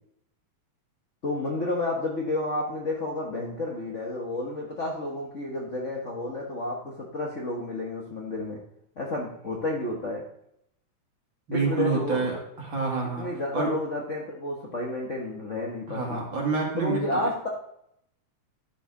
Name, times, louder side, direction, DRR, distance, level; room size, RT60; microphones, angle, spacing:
voice 1, 1.2-8.6 9.0-10.2 11.5-12.3 13.2-16.2 16.8-17.5, left 2 dB, 70° left, -2 dB, 0.6 m, -31 dB
voice 2, 11.5-13.3 13.5-13.7 15.9-17.2, right 4 dB, 40° right, -3 dB, 2.8 m, -28 dB
11.5 x 7.2 x 3.8 m, 0.73 s
omnidirectional pair, 3.4 m